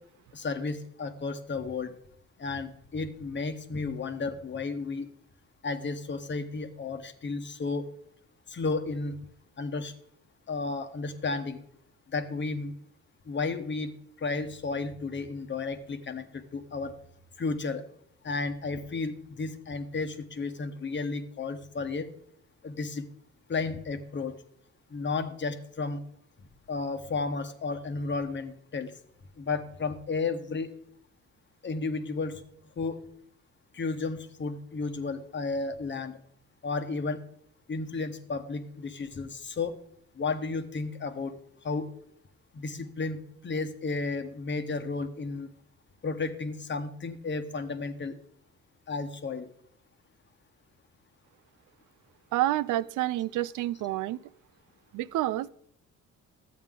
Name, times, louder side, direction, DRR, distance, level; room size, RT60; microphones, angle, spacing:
voice 1, 0.3-1.9 2.4-5.0 5.6-7.8 8.5-9.1 9.6-9.9 10.5-11.6 12.1-12.7 13.3-13.9 14.2-16.9 17.4-17.8 18.2-22.1 22.6-23.0 23.5-24.3 24.9-26.0 26.7-28.9 29.4-30.7 31.6-32.3 32.8-33.0 33.7-36.1 36.6-37.2 37.7-39.7 40.2-41.3 41.6-41.9 42.5-45.5 46.0-48.1 48.9-49.5, left 4 dB, 40° left, 8 dB, 1.1 m, -33 dB
voice 2, 52.3-54.2 54.9-55.5, right 15 dB, 80° right, 17 dB, 0.5 m, -28 dB
12.5 x 8.4 x 3.7 m, 0.68 s
cardioid pair, 90°, 30 cm